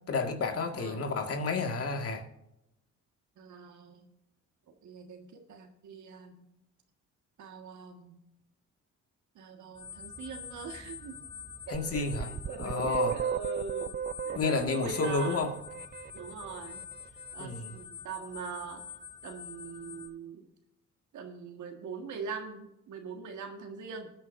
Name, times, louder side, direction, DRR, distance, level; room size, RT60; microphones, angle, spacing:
voice 1, 0.1-2.3 11.7-12.3 12.6-13.2 14.3-15.5 17.4-17.7, left 4 dB, 50° left, 2.0 m, -30 dB
voice 2, 3.4-4.1 4.7-6.5 7.4-8.2 9.4-11.2 11.7-13.9 14.3-15.5 16.1-16.9 17.3-18.8 19.2-20.5 21.1-24.1, right 5 dB, 75° right, 1.8 m, -42 dB
sound 1, 9.7-20.1, left 7 dB, 20° left, 3.6 m, -46 dB
sound 2, 11.7-16.6, right 8 dB, 35° right, 0.5 m, -35 dB
20.5 x 9.2 x 2.7 m
cardioid pair, 90°, 30 cm